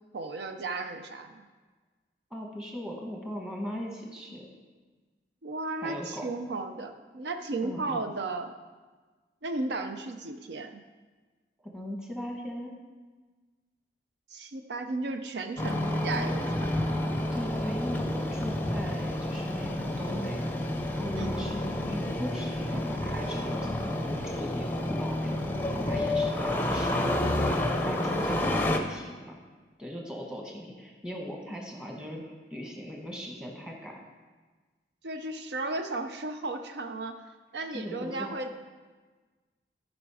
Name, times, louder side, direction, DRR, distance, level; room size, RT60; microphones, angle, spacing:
voice 1, 0.1-1.4 5.4-8.5 9.4-10.8 14.3-16.7 21.2-21.3 35.0-37.2 37.5-38.6, right 3 dB, 75° right, 6 dB, 0.6 m, -34 dB
voice 2, 2.3-4.5 5.8-6.3 7.6-8.0 11.6-12.7 17.3-20.6 20.9-25.5 25.8-27.6 27.8-29.4 29.8-34.0 37.7-38.2, equal, 5° right, -1 dB, 1.2 m, -39 dB
Engine starting, 15.6-28.8, left 1 dB, 10° left, 0.6 m, -29 dB
13.0 x 5.2 x 4.8 m, 1.4 s
head